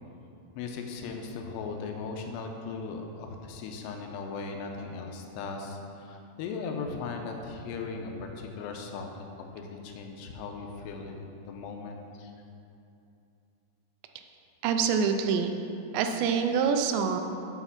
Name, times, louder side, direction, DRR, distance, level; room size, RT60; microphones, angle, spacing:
voice 1, 0.6-9.1 9.4-12.3, left 4 dB, 85° left, 3 dB, 2.7 m, -38 dB
voice 2, 14.6-15.5 15.9-17.2, right 6 dB, 85° right, 6 dB, 2.8 m, -25 dB
7.9 x 5.9 x 5.8 m, 2.7 s
omnidirectional pair, 5.0 m